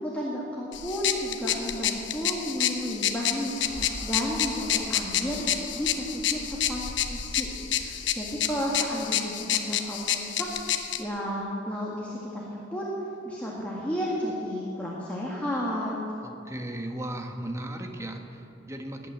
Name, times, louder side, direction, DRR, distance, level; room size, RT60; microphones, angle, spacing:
voice 1, 0.0-3.6 4.0-5.5 5.7-6.4 6.7-6.8 7.1-7.5 7.8-10.5 11.0-12.9 13.2-16.0, equal, 10° left, -5 dB, 2.0 m, -32 dB
sound 1, 0.7-11.0, left 10 dB, 75° left, 1.0 m, -29 dB
sound 2, 3.6-8.8, equal, 35° right, 1.9 m, -43 dB
voice 2, 16.2-19.1, right 1 dB, 15° right, 4 dB, 1.3 m, -36 dB
19.0 x 9.0 x 7.8 m, 3.0 s
head